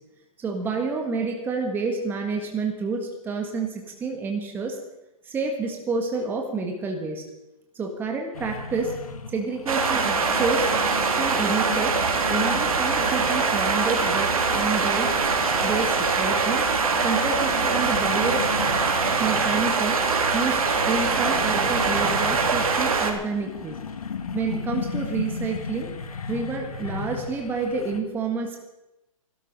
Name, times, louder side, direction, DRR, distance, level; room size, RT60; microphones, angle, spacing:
voice 1, 0.4-4.8 5.2-7.2 7.7-8.9 9.3-10.7 11.2-12.0 12.3-15.2 15.6-16.6 17.0-18.5 19.2-20.0 20.3-23.8 24.3-25.9 26.3-28.6, right 4 dB, 10° right, 2 dB, 1.6 m, -29 dB
sound 1, 8.3-28.0, left 5 dB, 80° left, 1.9 m, -36 dB
sound 2, 9.7-23.1, right 4 dB, 75° right, 2.8 m, -23 dB
15.5 x 13.0 x 5.3 m, 0.95 s
hypercardioid pair, 150°, 18 cm